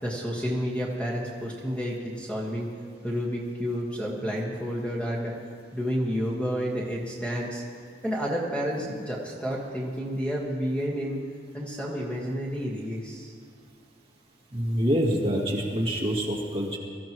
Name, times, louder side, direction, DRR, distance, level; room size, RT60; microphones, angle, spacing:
voice 1, 0.0-2.7 3.0-5.4 5.7-7.6 8.0-11.2 11.5-13.3, equal, 5° left, -3 dB, 1.6 m, -30 dB
voice 2, 14.5-16.8, equal, 30° right, -3 dB, 2.4 m, -26 dB
23.5 x 14.5 x 3.1 m, 2.2 s
head